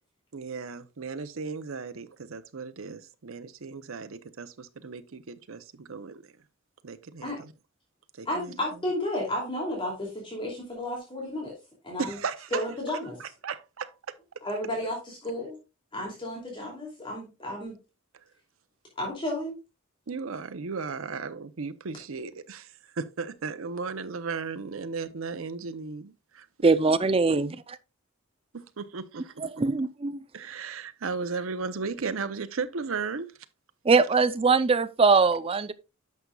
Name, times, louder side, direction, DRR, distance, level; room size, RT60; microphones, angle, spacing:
voice 1, 0.3-6.2 6.8-7.5 8.2-8.5 12.0-12.6 13.2-14.1 20.1-26.1 28.5-29.3 30.3-33.3, right 4 dB, 80° right, 0.7 m, -35 dB
voice 2, 8.2-11.5 11.8-12.2 12.5-13.2 14.4-15.6 15.9-17.7 19.0-19.6, left 1 dB, 25° left, 2.7 m, -32 dB
voice 3, 26.6-27.8 29.4-30.2 33.8-35.7, right 4 dB, 30° right, 0.5 m, -22 dB
11.0 x 6.8 x 2.3 m
head